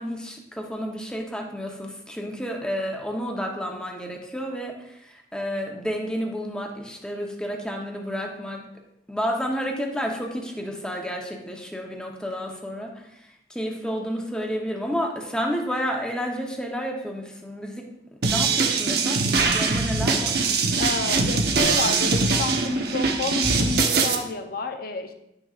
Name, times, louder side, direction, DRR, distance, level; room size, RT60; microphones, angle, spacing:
voice 1, 0.0-8.6 9.1-17.9 18.3-20.4, equal, 5° left, 1 dB, 0.9 m, -31 dB
sound 1, 18.2-24.1, right 4 dB, 60° right, 0.8 m, -22 dB
voice 2, 20.8-25.1, left 3 dB, 55° left, 6 dB, 0.7 m, -30 dB
10.0 x 6.5 x 2.5 m, 0.83 s
head